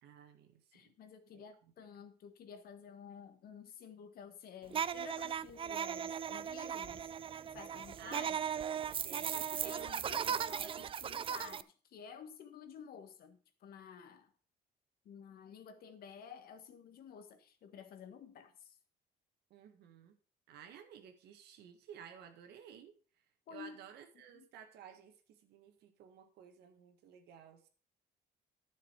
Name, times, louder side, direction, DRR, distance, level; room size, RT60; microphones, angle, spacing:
voice 1, 0.0-0.9 1.3-1.4 8.0-8.4 9.0-9.5 19.5-20.2 20.5-22.9 23.5-27.7, right 8 dB, 80° right, 1.7 m, -55 dB
voice 2, 0.7-7.0 7.5-8.4 9.6-14.3 15.0-18.8 23.5-23.8 24.3-24.5, left 7 dB, 65° left, 1.5 m, -52 dB
sound 1, 4.7-11.6, right 8 dB, 30° right, 0.4 m, -38 dB
11.0 x 6.7 x 4.7 m
cardioid pair, 110°, 17 cm